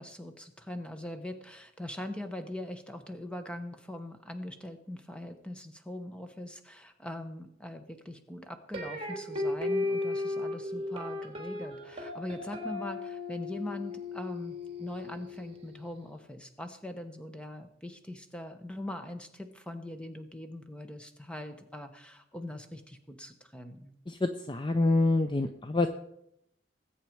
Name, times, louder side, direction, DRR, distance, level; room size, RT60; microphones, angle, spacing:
voice 1, 0.0-23.9, left 1 dB, 5° left, 7 dB, 1.1 m, -41 dB
sound 1, 8.7-15.8, left 2 dB, 30° right, 2.8 m, -35 dB
voice 2, 24.1-25.9, left 2 dB, 25° left, 8 dB, 0.5 m, -26 dB
19.5 x 8.6 x 4.6 m, 0.78 s
head